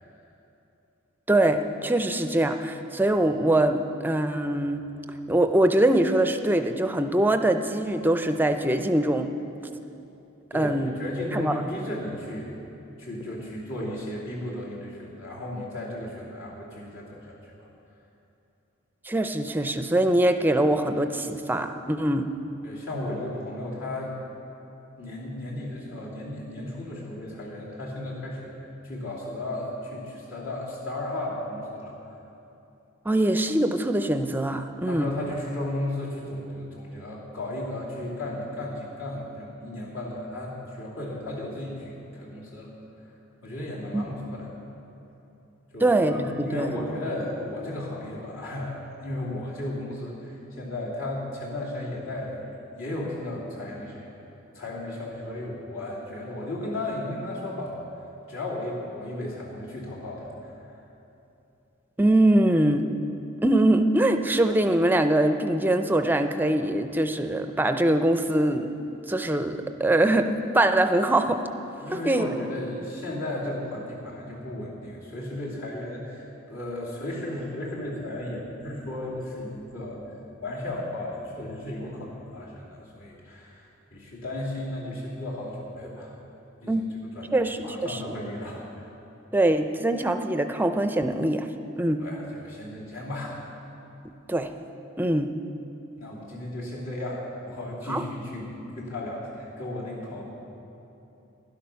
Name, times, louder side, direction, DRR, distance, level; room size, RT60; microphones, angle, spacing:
voice 1, 1.3-4.8 5.3-9.3 10.5-10.9 11.3-11.5 19.0-22.3 33.0-35.1 43.9-44.0 45.8-46.8 62.0-62.9 63.4-68.7 69.1-71.4 71.9-72.3 86.7-86.8 87.3-88.0 89.3-91.5 91.8-92.0 94.3-94.5 95.0-95.3 97.9-98.0, right 1 dB, 10° right, 7 dB, 0.5 m, -23 dB
voice 2, 10.5-12.5 13.0-17.7 22.6-24.1 25.0-28.5 28.8-31.9 34.9-42.7 43.4-44.5 45.7-54.1 54.5-57.8 58.3-60.3 71.8-80.0 80.4-86.1 86.6-86.8 87.1-88.9 92.0-93.4 95.9-100.2, left 1 dB, 70° left, -5 dB, 3.0 m, -35 dB
12.0 x 11.0 x 5.7 m, 2.9 s
head